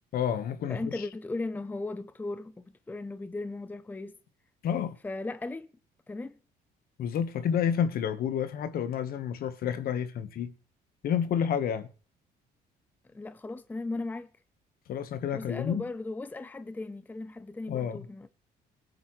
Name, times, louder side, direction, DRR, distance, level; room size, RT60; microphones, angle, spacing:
voice 1, 0.1-1.1 4.6-5.0 7.0-10.5 11.0-11.9 14.9-15.8 17.7-18.0, left 8 dB, 60° left, 1.3 m, -29 dB
voice 2, 0.7-4.2 5.0-5.7 6.1-6.4 13.1-14.3 15.3-18.3, left 2 dB, 10° left, 0.6 m, -37 dB
19.0 x 9.5 x 3.2 m
cardioid pair, 110°, 17 cm